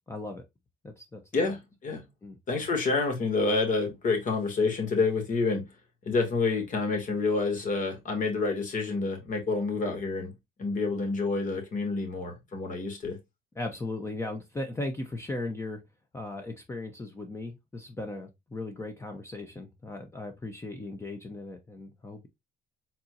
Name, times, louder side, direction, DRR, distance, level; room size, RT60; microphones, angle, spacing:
voice 1, 0.1-0.4 0.8-1.5 2.2-2.4 13.6-15.8 16.1-22.3, left 2 dB, 15° left, 0.8 m, -37 dB
voice 2, 1.3-2.0 2.5-5.6 6.0-10.3 10.6-13.2, left 3 dB, 50° left, 2.3 m, -28 dB
4.2 x 4.2 x 2.6 m
cardioid pair, 110°, 17 cm